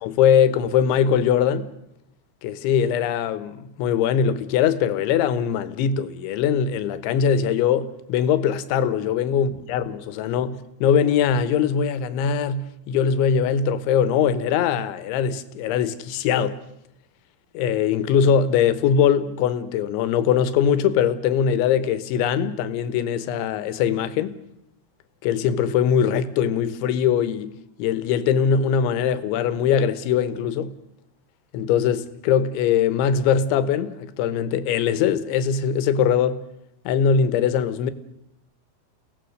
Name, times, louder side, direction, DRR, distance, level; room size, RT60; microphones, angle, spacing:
voice 1, 0.0-1.7 2.4-16.6 17.5-24.3 25.2-30.7 31.5-36.4 36.9-37.9, left 8 dB, 90° left, 3.5 m, -21 dB
30.0 x 18.0 x 6.4 m
omnidirectional pair, 5.2 m